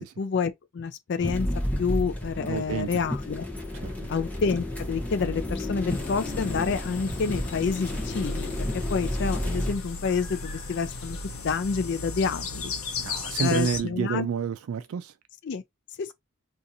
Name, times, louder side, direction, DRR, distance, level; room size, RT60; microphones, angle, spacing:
voice 1, 0.0-1.5 1.8-3.5 4.1-11.2 11.4-12.7 13.4-14.3 15.4-15.6 16.0-16.1, left 5 dB, 55° left, 0.4 m, -28 dB
sound 1, 1.2-9.7, left 1 dB, 5° left, 0.7 m, -31 dB
voice 2, 2.5-2.9 3.7-3.9 13.0-15.1, right 6 dB, 80° right, 0.3 m, -29 dB
sound 2, 5.9-13.8, left 4 dB, 80° left, 0.9 m, -36 dB
2.7 x 2.5 x 3.9 m
head